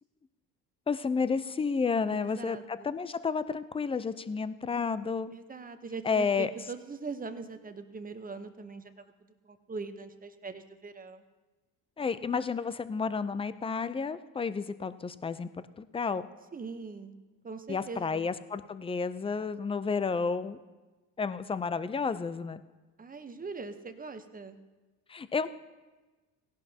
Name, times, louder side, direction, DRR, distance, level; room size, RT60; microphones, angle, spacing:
voice 1, 0.9-5.3 6.0-6.5 12.0-15.5 15.8-16.3 17.7-20.6 21.2-22.6 25.1-25.5, left 5 dB, 15° left, 14 dB, 0.5 m, -31 dB
voice 2, 2.1-2.9 5.3-11.2 16.5-17.1 17.4-18.3 23.0-24.6, right 4 dB, 20° right, 8 dB, 0.9 m, -41 dB
17.5 x 11.5 x 2.8 m, 1.2 s
supercardioid pair, 90°, 37 cm